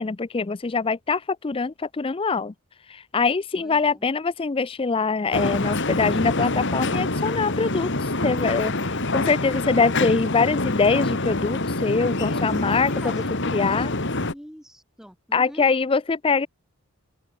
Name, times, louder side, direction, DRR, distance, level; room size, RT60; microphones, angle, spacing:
voice 1, 0.0-2.5 2.9-13.2 13.5-13.9 15.3-16.5, left 4 dB, 25° left, 0.4 m, -23 dB
voice 2, 3.6-4.1 12.0-15.7, equal, ahead, 5.3 m, -45 dB
sound 1, 5.3-14.3, left 2 dB, 55° left, 2.5 m, -26 dB
open air
head